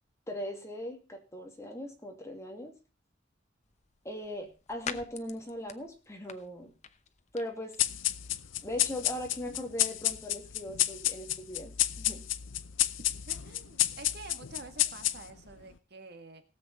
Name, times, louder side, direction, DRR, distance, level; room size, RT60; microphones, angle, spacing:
voice 1, 0.3-2.7 4.0-6.7 7.3-7.7 8.6-11.7 12.0-12.2, left 1 dB, 15° left, 2 dB, 2.5 m, -39 dB
sound 1, 3.6-12.3, left 6 dB, 35° left, 0.9 m, -49 dB
sound 2, 7.8-15.5, left 14 dB, 90° left, 0.7 m, -31 dB
voice 2, 13.3-16.4, right 3 dB, 55° right, 8 dB, 1.7 m, -48 dB
18.0 x 7.8 x 4.1 m, 0.32 s
head